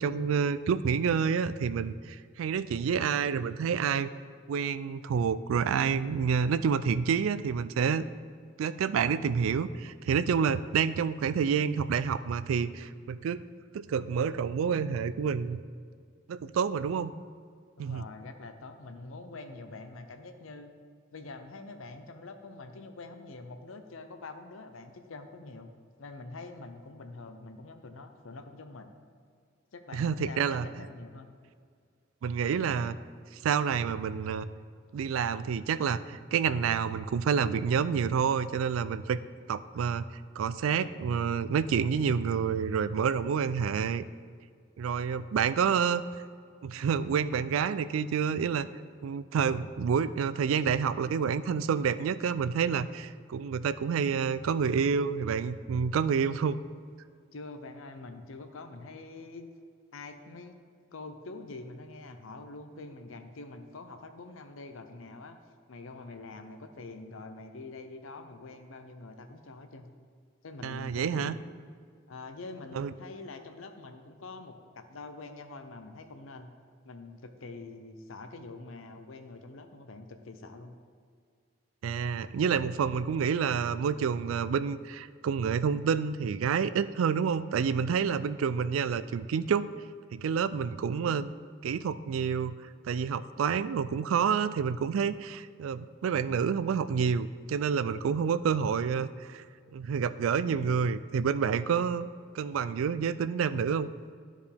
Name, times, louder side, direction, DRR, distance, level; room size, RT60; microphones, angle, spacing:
voice 1, 0.0-4.1 4.5-8.0 8.6-13.4 13.7-15.6 16.3-17.1 17.8-18.0 29.9-30.9 32.2-33.0 33.4-34.5 34.9-39.2 39.5-40.0 40.4-44.0 44.8-46.1 46.6-48.7 49.0-56.6 70.6-71.4 72.7-72.9 81.8-89.7 90.1-91.3 91.6-92.5 92.8-99.4 99.7-102.1 102.3-103.9, right 6 dB, 80° right, 14 dB, 0.3 m, -28 dB
voice 2, 17.8-20.7 21.1-25.7 26.0-28.9 29.7-31.3 43.6-43.7 45.0-45.2 49.5-49.6 57.3-59.5 59.9-60.6 60.9-65.4 65.7-69.9 70.4-71.4 72.1-76.5 76.8-80.8, left 3 dB, 80° left, 7 dB, 0.7 m, -45 dB
12.5 x 5.0 x 3.4 m, 2.1 s
head